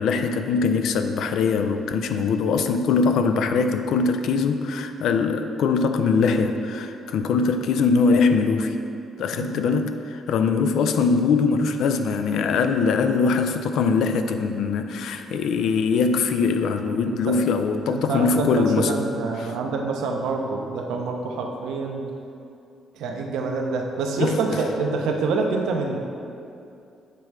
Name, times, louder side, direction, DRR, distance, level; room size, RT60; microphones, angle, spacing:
voice 1, 0.0-8.8 9.2-18.9 19.4-19.5 24.2-24.4, left 5 dB, 75° left, 8 dB, 0.3 m, -22 dB
voice 2, 17.8-22.0 22.9-26.0, right 4 dB, 85° right, 2 dB, 0.6 m, -26 dB
6.8 x 3.2 x 4.6 m, 2.6 s
cardioid pair, 90°, 0 cm